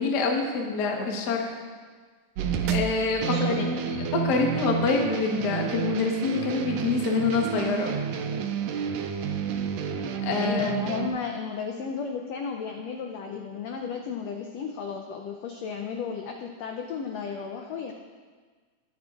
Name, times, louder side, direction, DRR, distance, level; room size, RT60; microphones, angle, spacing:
voice 1, 0.0-1.6 2.6-3.6 4.2-7.9 10.2-10.7, left 4 dB, 65° left, 1 dB, 1.0 m, -26 dB
sound 1, 2.4-11.1, right 7 dB, 90° right, 1.4 m, -30 dB
voice 2, 3.2-3.8 10.4-17.9, left 6 dB, 80° left, 3 dB, 1.5 m, -33 dB
21.0 x 8.2 x 2.5 m, 1.5 s
omnidirectional pair, 3.7 m